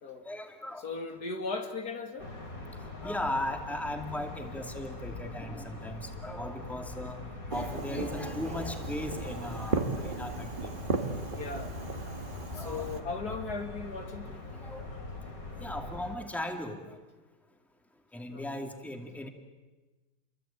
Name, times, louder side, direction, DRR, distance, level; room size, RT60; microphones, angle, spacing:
voice 1, 0.3-0.8 3.0-7.2 7.5-10.7 12.5-12.8 14.6-14.8 15.6-16.8 18.1-19.3, left 1 dB, ahead, 4 dB, 2.4 m, -37 dB
voice 2, 0.8-2.3 11.3-11.7 12.5-14.5 18.3-18.7, left 4 dB, 75° left, 5 dB, 2.8 m, -38 dB
sound 1, 2.2-16.2, left 3 dB, 60° left, 4.4 m, -43 dB
Fireworks, 7.5-13.0, right 3 dB, 30° right, 1.9 m, -35 dB
29.0 x 23.0 x 8.9 m, 1.2 s
omnidirectional pair, 1.7 m